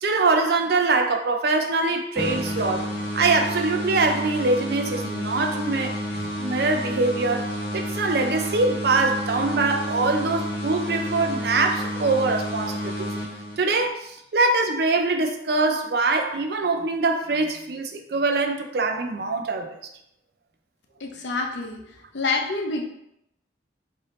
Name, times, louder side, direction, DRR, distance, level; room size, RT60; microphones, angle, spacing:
voice 1, 0.0-2.9 3.1-13.1 13.6-19.8, right 3 dB, 60° right, 0.4 m, -23 dB
sound 1, 2.1-13.9, equal, 30° left, 1.1 m, -30 dB
voice 2, 21.0-21.8 22.1-22.8, left 3 dB, 80° left, 0.7 m, -27 dB
3.3 x 2.7 x 3.8 m
head